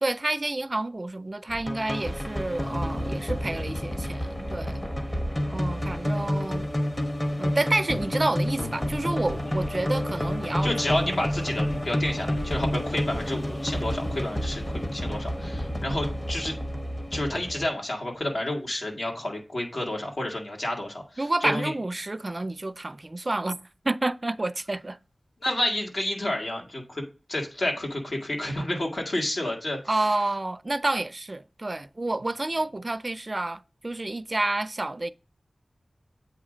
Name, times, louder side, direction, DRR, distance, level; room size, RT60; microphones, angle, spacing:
voice 1, 0.0-4.8 5.5-6.7 7.4-11.2 21.2-25.0 29.9-35.1, right 2 dB, 40° right, 0.4 m, -29 dB
sound 1, 1.5-17.7, equal, 25° left, 1.0 m, -29 dB
voice 2, 10.6-16.5 17.1-21.7 25.4-29.8, left 1 dB, 65° left, 1.8 m, -30 dB
8.1 x 2.7 x 5.0 m
wide cardioid pair, 50°, 0 cm